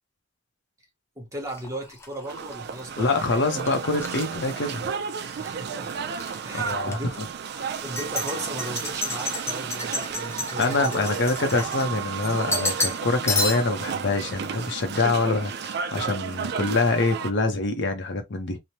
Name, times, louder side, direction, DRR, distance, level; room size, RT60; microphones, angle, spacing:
voice 1, 1.2-3.1 5.4-5.9 6.4-7.5 7.8-11.0, equal, 15° right, 1.0 m, -36 dB
sound 1, 1.5-5.4 5.7-6.4 6.9-7.0 7.7-12.1 12.5-13.0 13.3-13.9, left 2 dB, 15° left, 0.6 m, -31 dB
sound 2, 2.3-17.3, right 7 dB, 60° right, 0.4 m, -32 dB
voice 2, 3.0-4.9 6.5-7.0 7.6-7.8 10.6-18.6, left 3 dB, 65° left, 0.7 m, -25 dB
3.0 x 2.1 x 2.7 m
head